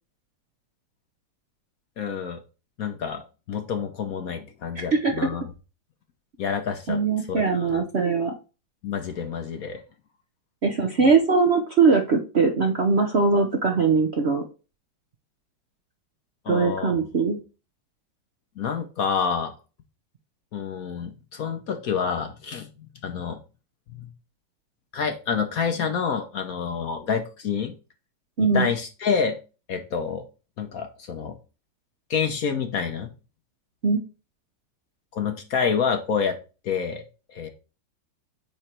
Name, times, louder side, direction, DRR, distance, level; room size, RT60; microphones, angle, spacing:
voice 1, 2.0-2.4 2.8-5.4 6.4-7.0 7.3-7.8 8.8-9.8 16.4-16.9 18.6-19.5 20.5-23.4 24.0-24.1 24.9-27.7 28.4-29.4 29.7-30.2 30.6-31.4 32.1-33.1 35.1-36.4 36.6-37.0 37.3-37.5, left 6 dB, 55° left, 6 dB, 1.1 m, -28 dB
voice 2, 4.7-5.3 6.9-8.3 10.6-14.4 16.5-17.4 28.4-28.7 33.8-34.0, right 4 dB, 50° right, 2 dB, 0.8 m, -21 dB
8.8 x 3.3 x 4.3 m, 0.33 s
omnidirectional pair, 2.1 m